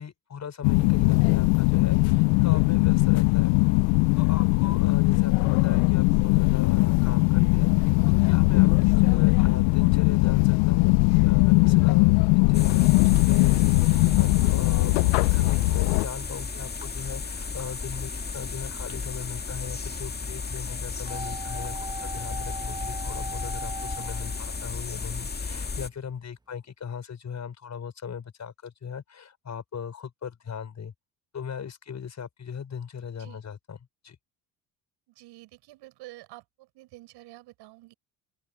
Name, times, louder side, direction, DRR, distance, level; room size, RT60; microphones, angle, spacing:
voice 1, 0.0-3.5 4.1-30.9 31.3-33.8 34.0-34.2, left 7 dB, 40° left, 6.2 m, -38 dB
sound 1, 0.6-16.1, left 27 dB, 75° left, 0.7 m, -20 dB
sound 2, 12.5-25.9, left 4 dB, 25° left, 2.0 m, -34 dB
sound 3, 21.1-25.2 25.4-25.5, right 2 dB, 10° right, 1.2 m, -39 dB
voice 2, 35.1-37.9, right 19 dB, 70° right, 7.5 m, -48 dB
open air
hypercardioid pair, 70°, 42 cm